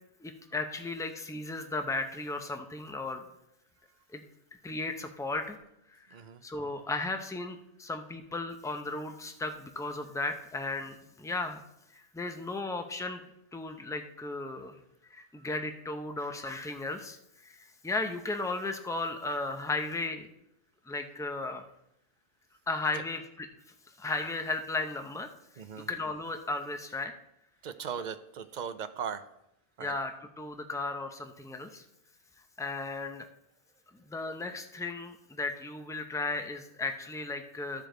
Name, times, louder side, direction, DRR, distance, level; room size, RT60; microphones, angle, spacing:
voice 1, 0.2-3.2 4.1-4.2 4.6-5.6 5.9-6.1 6.4-11.6 12.1-13.2 13.5-14.8 15.1-17.2 17.4-20.3 20.9-21.6 22.7-23.5 24.0-25.3 25.9-27.1 29.8-31.8 32.6-33.3 34.1-37.9, left 3 dB, 5° left, 6 dB, 0.5 m, -35 dB
voice 2, 6.1-6.4 22.9-23.0 25.6-25.9 27.6-29.2 29.8-29.9, right 7 dB, 50° right, 11 dB, 0.6 m, -38 dB
14.0 x 5.1 x 3.8 m, 0.82 s
omnidirectional pair, 1.1 m